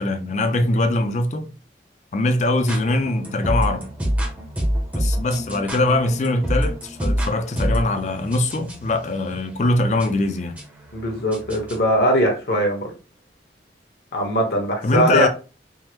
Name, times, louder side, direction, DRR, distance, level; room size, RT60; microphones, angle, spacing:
voice 1, 0.0-1.5 2.1-3.9 4.9-10.5 14.8-15.3, left 2 dB, 40° left, 0.4 m, -22 dB
sound 1, 2.6-11.9, equal, 10° right, 0.6 m, -27 dB
voice 2, 10.9-12.9 14.1-15.3, equal, 65° left, 1.0 m, -20 dB
3.5 x 2.0 x 2.9 m
head